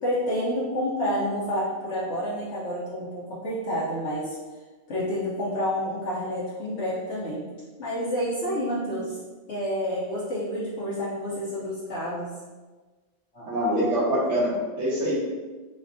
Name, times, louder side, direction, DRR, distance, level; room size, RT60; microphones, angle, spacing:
voice 1, 0.0-4.4 4.9-7.5 7.8-9.2 9.5-12.3 13.3-13.5, equal, 65° left, -8 dB, 0.9 m, -29 dB
voice 2, 13.5-15.2, equal, 75° right, -5 dB, 1.2 m, -24 dB
4.1 x 2.1 x 2.5 m, 1.3 s
omnidirectional pair, 1.3 m